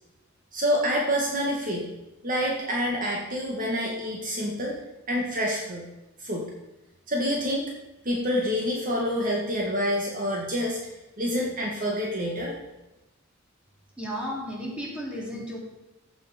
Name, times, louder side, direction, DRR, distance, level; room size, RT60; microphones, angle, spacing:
voice 1, 0.5-1.9 2.2-4.8 5.1-5.9 6.2-6.5 7.1-7.7 8.0-10.8 11.2-12.5, equal, 40° right, -1 dB, 2.0 m, -27 dB
voice 2, 14.0-15.6, equal, 5° right, -4 dB, 3.6 m, -33 dB
15.0 x 7.5 x 5.3 m, 0.99 s
head